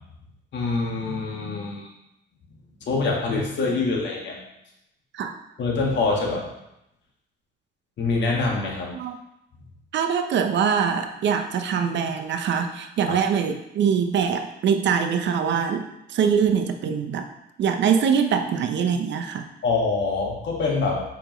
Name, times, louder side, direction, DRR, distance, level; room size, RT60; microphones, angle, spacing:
voice 1, 0.5-1.9 2.8-4.4 5.6-6.5 8.0-8.9 13.1-13.2 19.6-21.0, left 3 dB, 65° left, -2 dB, 1.7 m, -25 dB
voice 2, 9.9-17.3 17.6-19.5, right 7 dB, 65° right, 6 dB, 0.7 m, -23 dB
6.9 x 5.1 x 3.0 m, 0.85 s
cardioid pair, 100°, 20 cm